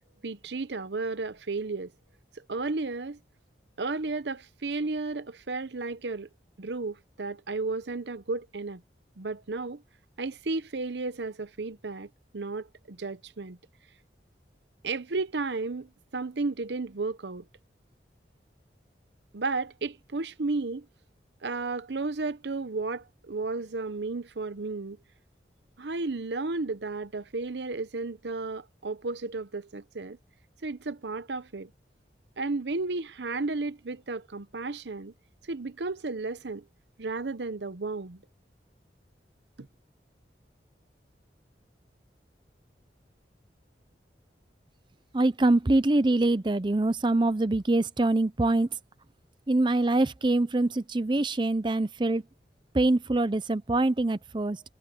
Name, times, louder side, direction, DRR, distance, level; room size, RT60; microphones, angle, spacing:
voice 1, 0.2-1.9 2.5-3.2 3.8-6.3 6.6-8.8 9.2-9.8 10.2-13.6 14.8-17.4 19.3-20.9 21.4-25.0 25.8-30.2 30.6-31.7 32.4-35.1 35.5-36.7 37.0-38.2 39.6-39.7, right 3 dB, 80° right, 0.8 m, -33 dB
voice 2, 45.1-48.7 49.5-52.2 52.7-54.6, right 2 dB, 25° right, 0.5 m, -24 dB
head